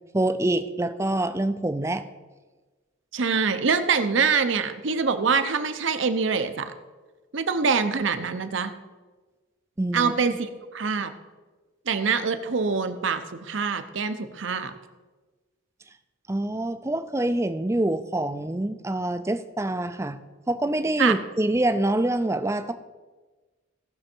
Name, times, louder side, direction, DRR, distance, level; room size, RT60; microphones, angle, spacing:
voice 1, 0.1-2.0 9.8-10.1 16.3-20.2 20.5-22.7, right 1 dB, 15° right, 10 dB, 0.4 m, -25 dB
voice 2, 3.1-6.7 7.3-8.7 9.9-10.3 10.7-11.1 11.9-14.7 21.0-21.2, right 5 dB, 65° right, 9 dB, 0.8 m, -24 dB
17.0 x 6.3 x 4.5 m, 1.3 s
head